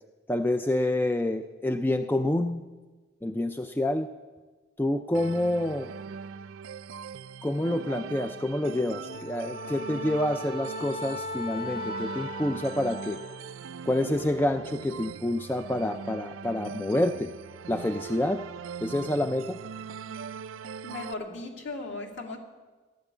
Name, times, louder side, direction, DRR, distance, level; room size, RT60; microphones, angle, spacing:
voice 1, 0.3-2.6 3.2-4.1 4.8-5.9 7.4-13.2 13.9-17.3 17.7-18.4 18.8-19.6, left 1 dB, 10° left, 7 dB, 0.4 m, -28 dB
sound 1, 5.1-21.1, right 6 dB, 85° right, 0.4 m, -41 dB
Wind instrument woodwind instrument, 9.1-13.5, left 1 dB, 30° left, 0.9 m, -38 dB
voice 2, 20.8-22.4, left 2 dB, 60° left, 1 dB, 2.5 m, -37 dB
15.5 x 11.0 x 8.1 m, 1.3 s
head